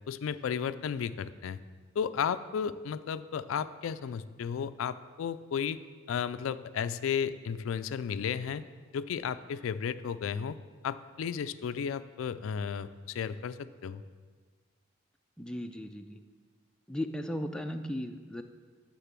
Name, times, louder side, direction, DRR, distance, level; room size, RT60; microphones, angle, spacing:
voice 1, 0.1-1.6 2.0-5.8 6.1-8.6 8.9-10.6 10.8-14.0, left 7 dB, 75° left, 14 dB, 0.3 m, -33 dB
voice 2, 15.4-16.2 16.9-18.4, left 1 dB, 5° left, 5 dB, 0.4 m, -36 dB
6.7 x 6.5 x 7.4 m, 1.5 s
head